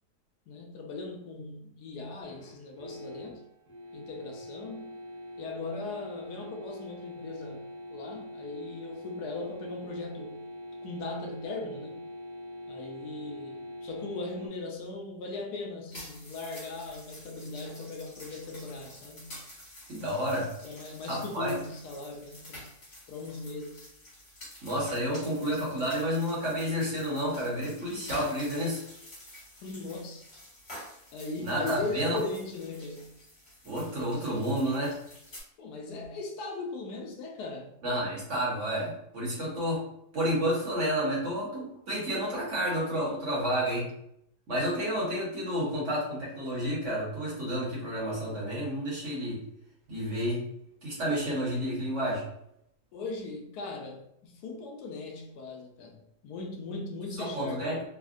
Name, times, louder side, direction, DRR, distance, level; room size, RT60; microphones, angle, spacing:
voice 1, 0.5-3.4 3.9-4.9 5.4-7.6 7.9-10.4 10.8-12.0 12.7-19.4 20.6-22.7 23.1-23.9 29.6-30.3 31.1-33.1 35.6-37.8 52.9-57.8, left 3 dB, 80° left, 1.1 m, -39 dB
sound 1, 2.2-14.5, left 1 dB, 70° right, 1.5 m, -43 dB
sound 2, 15.9-35.4, left 1 dB, 45° left, 1.3 m, -49 dB
voice 2, 19.9-20.5 21.1-21.5 24.6-28.8 31.4-32.2 33.6-35.0 37.8-39.8 40.1-43.9 44.5-49.4 49.9-50.5 50.8-52.2 57.2-57.8, equal, 55° right, 1.1 m, -30 dB
3.3 x 2.1 x 2.4 m
omnidirectional pair, 1.7 m